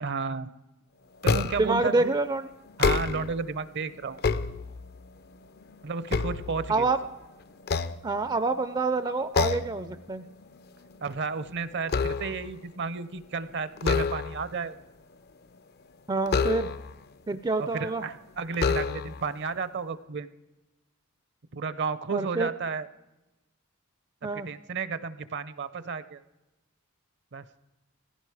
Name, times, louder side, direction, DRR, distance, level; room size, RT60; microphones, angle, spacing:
voice 1, 0.0-0.5 1.2-2.1 2.8-4.2 5.8-6.9 11.0-14.8 17.6-20.3 21.5-22.9 24.3-26.2 27.3-27.4, right 4 dB, 55° right, 15 dB, 0.7 m, -32 dB
sound 1, 1.2-1.8 2.7-3.4 4.0-5.1 5.6-7.1 7.6-8.6 9.3-9.8 10.2-10.5 10.8-12.6 13.8-14.6 16.3-17.0 17.8-17.9 18.5-19.3, left 4 dB, 50° left, 0.5 m, -28 dB
voice 2, 1.6-2.5 6.7-7.0 8.0-10.2 16.1-16.7 17.3-18.0 22.1-22.5 24.2-24.5, right 3 dB, 20° right, 12 dB, 0.4 m, -27 dB
16.0 x 15.5 x 4.8 m, 1.0 s
head